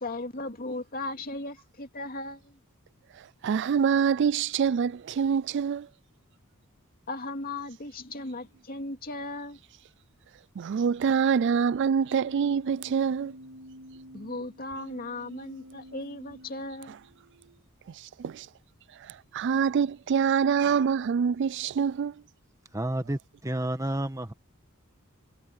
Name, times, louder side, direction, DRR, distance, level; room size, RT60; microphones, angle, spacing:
voice 1, 0.0-2.6 7.1-9.6 14.1-17.0, left 2 dB, 45° left, 2.6 m, -37 dB
voice 2, 3.4-5.9 10.6-13.3 18.2-18.5 19.0-22.1, right 7 dB, 55° right, 0.4 m, -25 dB
Keyboard (musical), 11.7-17.7, equal, 90° right, 6.2 m, -49 dB
voice 3, 22.7-24.3, right 1 dB, 15° right, 1.5 m, -30 dB
head